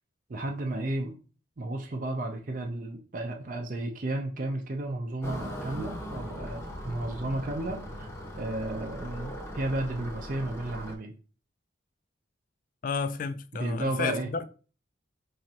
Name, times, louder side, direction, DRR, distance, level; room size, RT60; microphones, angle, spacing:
voice 1, 0.3-1.2 1.6-8.1 8.4-11.1 13.5-14.3, right 2 dB, 45° right, 0.5 m, -33 dB
sound 1, 5.2-10.9, equal, 15° left, 0.7 m, -39 dB
voice 2, 12.8-14.5, left 5 dB, 45° left, 0.3 m, -32 dB
4.9 x 3.2 x 2.8 m
head